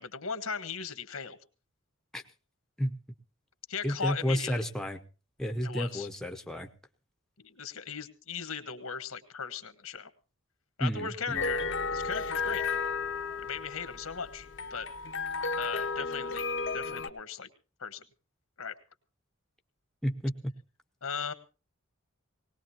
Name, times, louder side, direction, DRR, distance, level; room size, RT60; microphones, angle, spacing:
voice 1, 0.0-1.4 3.7-4.6 5.6-6.1 7.4-10.1 10.8-11.6 11.9-12.6 13.4-14.9 15.6-16.5 16.7-17.5 17.8-18.0 18.6-18.7 21.0-21.3, left 6 dB, 85° left, 10 dB, 1.4 m, -38 dB
voice 2, 3.8-5.0 5.4-6.7 10.8-11.5 20.0-20.3, equal, ahead, 5 dB, 0.8 m, -31 dB
sound 1, 11.3-17.1, left 4 dB, 55° left, 0.8 m, -33 dB
19.5 x 19.0 x 2.9 m, 0.34 s
head